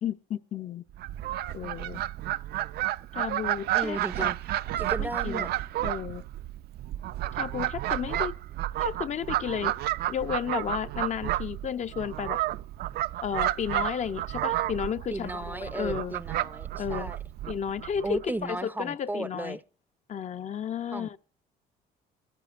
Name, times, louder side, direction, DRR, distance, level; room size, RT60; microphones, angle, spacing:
voice 1, 0.0-0.8 1.5-2.0 3.1-4.3 5.0-5.5 5.8-6.2 7.3-8.3 8.8-9.7 10.1-12.4 13.2-16.1 16.8-17.1 17.5-19.6 20.1-21.2, left 8 dB, 45° left, 0.7 m, -33 dB
Fowl, 0.9-18.3, right 14 dB, 70° right, 0.5 m, -31 dB
voice 2, 3.7-4.4 4.8-5.5 15.1-17.2 18.0-19.6 20.9-21.2, right 2 dB, 10° right, 0.5 m, -35 dB
22.5 x 14.0 x 2.5 m
cardioid pair, 110°, 17 cm